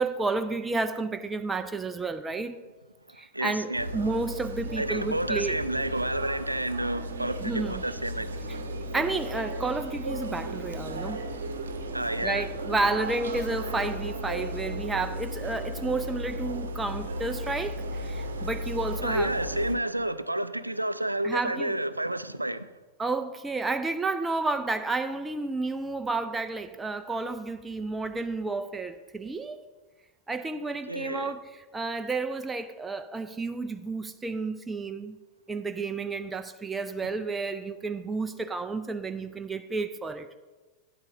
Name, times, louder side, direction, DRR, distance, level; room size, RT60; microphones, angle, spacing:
voice 1, 0.0-2.6 3.1-5.6 7.4-7.8 8.7-11.2 12.2-19.3 21.2-21.8 23.0-29.6 30.3-35.2 35.5-40.4, right 3 dB, 10° right, 0.4 m, -31 dB
voice 2, 3.3-3.9 4.8-8.6 11.9-12.5 19.0-22.7 30.9-31.3, right 1 dB, 85° right, 0.3 m, -30 dB
sound 1, 3.7-19.7, right 1 dB, 65° right, 0.8 m, -35 dB
9.5 x 8.3 x 3.8 m
figure-of-eight pair, 90°, 0 cm